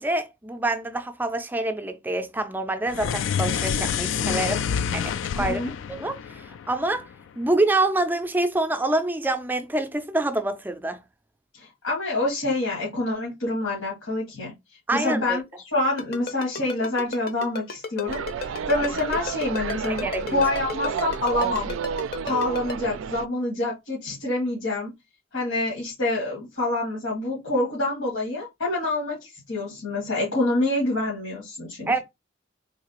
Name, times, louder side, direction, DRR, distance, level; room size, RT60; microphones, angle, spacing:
voice 1, 0.0-4.6 4.9-5.6 5.9-7.1 7.4-11.0 14.9-15.4 19.9-20.4 31.9-32.0, right 2 dB, 10° right, 0.4 m, -26 dB
sound 1, 2.9-7.3, left 7 dB, 70° left, 0.3 m, -28 dB
voice 2, 11.5-14.5 14.9-15.4 15.7-21.7 22.2-24.9 25.3-32.0, left 2 dB, 90° left, 1.8 m, -27 dB
Ringtone, 16.0-22.7, left 3 dB, 50° left, 0.7 m, -32 dB
sound 2, 18.1-23.3, right 7 dB, 80° right, 0.3 m, -31 dB
3.9 x 2.8 x 2.9 m
head